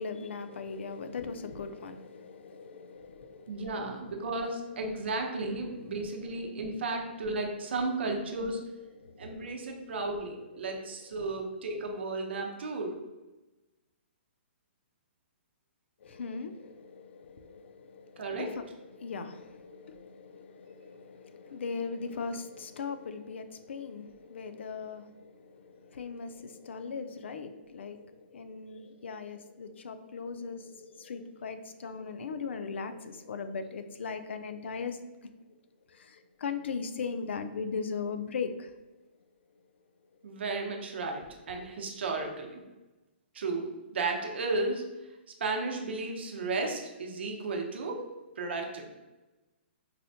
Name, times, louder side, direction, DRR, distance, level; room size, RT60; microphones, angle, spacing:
voice 1, 0.0-3.9 5.7-6.0 9.0-9.9 10.7-11.1 16.0-35.0 35.9-38.7, left 5 dB, 75° left, 0.4 m, -39 dB
voice 2, 3.5-8.6 9.2-12.9 18.2-18.5 40.2-42.6 43.3-43.7 43.9-44.8 45.4-48.0 48.4-48.9, right 3 dB, 65° right, 0.7 m, -34 dB
4.0 x 2.1 x 2.7 m
hypercardioid pair, 165°, 6 cm